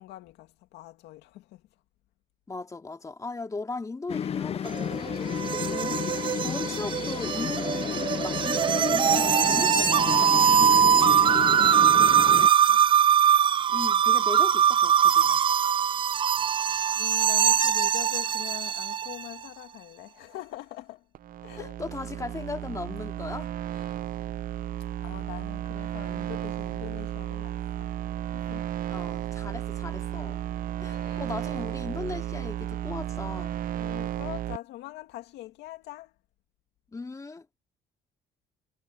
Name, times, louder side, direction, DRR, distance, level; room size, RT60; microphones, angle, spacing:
voice 1, 0.0-1.6 10.7-12.8 16.9-21.0 21.4-21.8 23.7-24.0 25.0-27.9 28.3-28.8 30.8-31.3 33.8-36.1, left 16 dB, 90° left, 2.4 m, -43 dB
voice 2, 2.5-10.4 13.7-15.4 21.6-23.5 28.9-30.4 30.8-33.6 36.9-37.4, left 3 dB, 20° left, 2.5 m, -38 dB
sound 1, 4.1-12.5, left 8 dB, 35° left, 0.5 m, -32 dB
sound 2, 4.7-19.3, right 8 dB, 30° right, 0.3 m, -22 dB
sound 3, 21.1-34.6, right 12 dB, 55° right, 0.7 m, -33 dB
cardioid pair, 110°, 17 cm